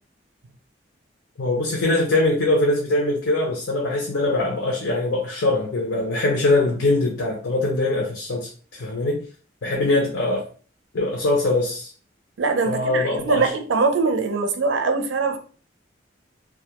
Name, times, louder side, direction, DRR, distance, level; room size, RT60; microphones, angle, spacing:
voice 1, 1.4-9.2 9.6-10.5 10.9-11.9 12.7-13.5, left 2 dB, 85° left, 0.6 m, -22 dB
voice 2, 12.4-15.4, right 4 dB, 85° right, 0.4 m, -22 dB
2.2 x 2.1 x 2.8 m
head